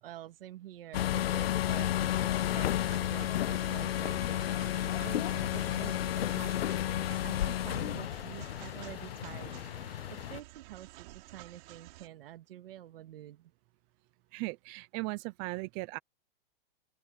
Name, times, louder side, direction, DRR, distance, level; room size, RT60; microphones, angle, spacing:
voice 1, 0.0-13.5, right 13 dB, 70° right, 1.8 m, -48 dB
sound 1, 0.9-10.4, left 12 dB, 90° left, 0.7 m, -32 dB
sound 2, 2.6-12.1, right 20 dB, 50° right, 5.0 m, -52 dB
voice 2, 14.3-16.0, right 23 dB, 20° right, 0.3 m, -37 dB
open air
supercardioid pair, 155°, 29 cm